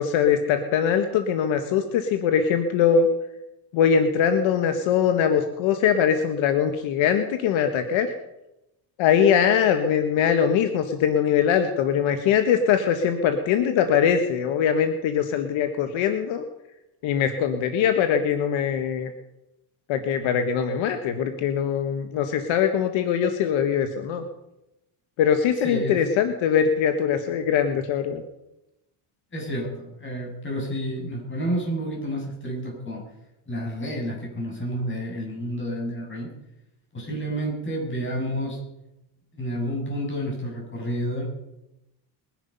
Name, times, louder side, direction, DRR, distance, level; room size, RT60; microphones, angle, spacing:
voice 1, 0.0-3.1 3.7-8.1 9.0-16.4 17.0-19.1 19.9-24.3 25.2-28.2, left 8 dB, 75° left, 7 dB, 1.6 m, -22 dB
voice 2, 25.6-26.0 29.3-33.0 33.5-36.3 36.9-38.6 39.3-41.2, equal, 25° left, 0 dB, 7.0 m, -30 dB
21.5 x 11.0 x 5.5 m, 0.91 s
cardioid pair, 125°, 48 cm